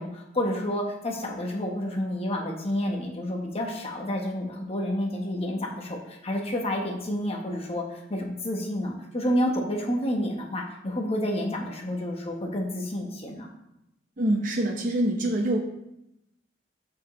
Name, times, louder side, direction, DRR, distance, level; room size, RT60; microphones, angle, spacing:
voice 1, 0.0-13.5, left 1 dB, 35° left, 0 dB, 1.2 m, -29 dB
voice 2, 14.2-15.6, right 1 dB, 45° right, -1 dB, 1.0 m, -25 dB
13.0 x 4.8 x 3.2 m, 0.85 s
head